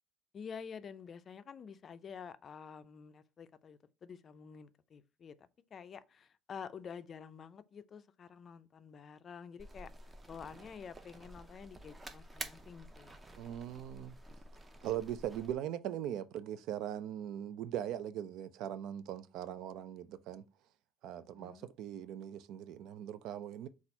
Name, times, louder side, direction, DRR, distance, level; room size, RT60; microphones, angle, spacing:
voice 1, 0.3-9.9 10.3-13.2 21.3-21.7, left 6 dB, 35° left, 0.4 m, -49 dB
sound 1, 9.6-15.5, right 1 dB, 15° right, 0.5 m, -50 dB
voice 2, 13.4-14.1 14.8-20.4 21.0-23.7, right 11 dB, 70° right, 0.5 m, -40 dB
4.2 x 2.4 x 4.3 m
cardioid pair, 135°, 0 cm